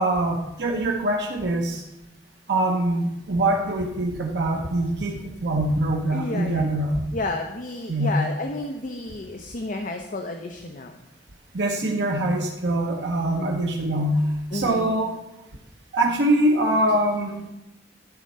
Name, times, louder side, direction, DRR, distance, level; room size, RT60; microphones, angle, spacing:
voice 1, 0.0-1.8 2.5-7.0 7.9-8.2 11.5-14.3 14.5-15.2 15.9-17.5, right 1 dB, 85° right, 1 dB, 1.0 m, -23 dB
voice 2, 6.1-6.9 7.1-11.0 14.5-15.0, left 2 dB, 50° left, 4 dB, 0.8 m, -31 dB
12.0 x 4.3 x 6.7 m, 0.95 s
head